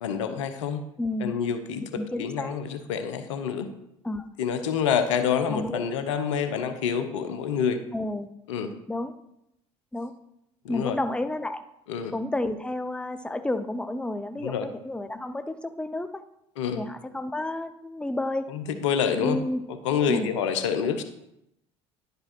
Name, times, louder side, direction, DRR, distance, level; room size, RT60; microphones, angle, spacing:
voice 1, 0.0-0.9 1.2-1.8 2.2-3.7 4.4-7.8 8.5-8.8 10.6-11.0 11.9-12.1 14.4-14.7 16.6-16.9 18.5-19.4 19.7-21.0, left 7 dB, 80° left, 9 dB, 0.8 m, -27 dB
voice 2, 1.0-1.3 1.9-2.6 4.0-4.2 5.5-5.9 7.9-8.3 8.9-9.1 9.9-10.1 10.7-11.6 12.1-16.2 16.7-18.5 19.2-19.6 20.1-20.3, left 1 dB, 5° left, 10 dB, 0.7 m, -31 dB
11.0 x 5.3 x 4.5 m, 0.82 s
hypercardioid pair, 65°, 15 cm